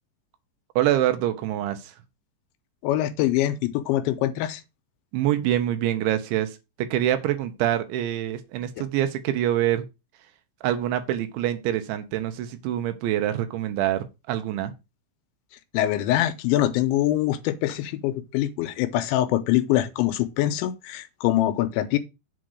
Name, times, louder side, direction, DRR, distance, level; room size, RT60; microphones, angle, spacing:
voice 1, 0.8-1.9 5.1-6.5 6.8-9.8 10.6-14.7, right 12 dB, 80° right, 3.3 m, -25 dB
voice 2, 2.8-4.6 15.7-22.0, left 14 dB, 85° left, 3.0 m, -24 dB
7.7 x 3.8 x 6.4 m
omnidirectional pair, 5.3 m